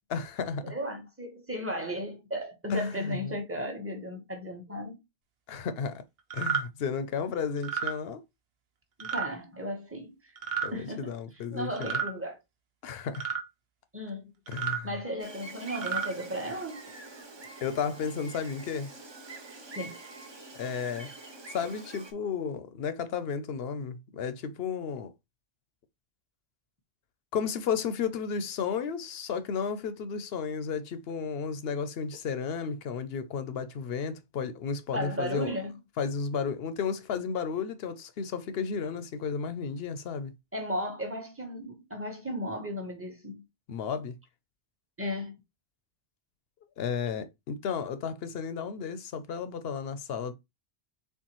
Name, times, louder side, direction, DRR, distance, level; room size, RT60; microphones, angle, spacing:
voice 1, 0.1-0.7 2.7-3.4 5.5-6.0 6.3-8.2 10.6-12.0 12.8-13.3 14.5-15.0 17.6-18.9 20.5-21.1 21.5-25.1 27.3-35.5 36.0-40.3 43.7-44.2 46.8-50.3, left 6 dB, 70° left, 0.8 m, -33 dB
voice 2, 0.6-5.0 9.0-10.4 10.7-11.1 11.5-12.4 13.9-14.3 14.8-16.9 19.8-20.0 34.9-35.8 40.5-43.4 45.0-45.3, equal, 15° right, 1.0 m, -35 dB
sound 1, 6.3-6.6 7.6-7.9 9.0-9.3 10.4-10.7 11.8-12.1 13.1-13.4 14.5-14.8 15.7-16.1, right 7 dB, 65° right, 1.0 m, -31 dB
Gull seagull, 15.2-22.1, right 2 dB, 30° right, 0.7 m, -46 dB
4.4 x 3.5 x 3.0 m
omnidirectional pair, 1.1 m